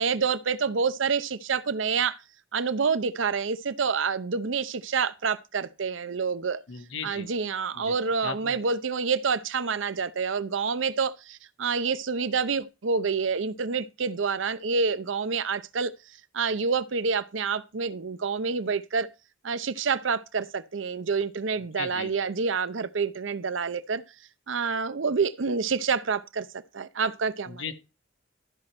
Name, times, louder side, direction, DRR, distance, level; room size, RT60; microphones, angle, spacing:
voice 1, 0.0-2.2 2.5-6.6 7.0-15.9 16.3-19.1 19.4-24.0 24.5-26.5 26.7-27.6, right 5 dB, 70° right, 0.6 m, -27 dB
voice 2, 6.7-7.3 7.7-8.0 8.2-8.6 21.8-22.1 27.5-27.7, left 6 dB, 70° left, 1.1 m, -37 dB
13.0 x 6.0 x 4.3 m
head